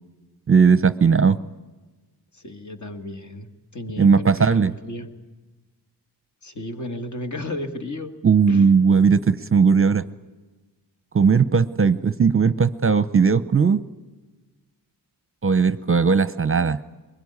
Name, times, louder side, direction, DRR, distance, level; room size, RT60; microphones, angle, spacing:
voice 1, 0.5-1.4 4.0-4.7 8.2-10.0 11.1-13.8 15.4-16.8, right 5 dB, 30° right, 14 dB, 0.7 m, -17 dB
voice 2, 2.3-5.1 6.4-8.2 8.5-8.7, left 1 dB, 45° left, 6 dB, 2.2 m, -34 dB
23.0 x 21.0 x 9.7 m, 1.2 s
wide cardioid pair, 120°, 41 cm